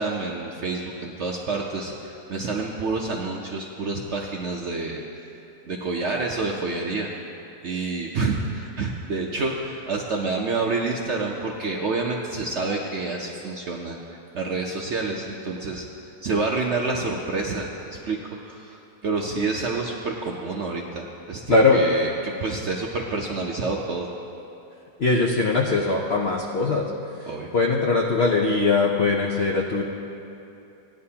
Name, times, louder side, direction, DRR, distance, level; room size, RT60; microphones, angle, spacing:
voice 1, 0.0-5.0 5.7-7.1 7.6-15.9 16.2-17.7 18.0-18.2 18.4-24.1 27.3-27.5, right 3 dB, 75° right, -1 dB, 0.6 m, -28 dB
voice 2, 21.5-21.8 25.0-26.9 27.5-29.8, left 3 dB, 70° left, -1 dB, 0.6 m, -21 dB
17.0 x 10.5 x 2.8 m, 2.8 s
omnidirectional pair, 2.1 m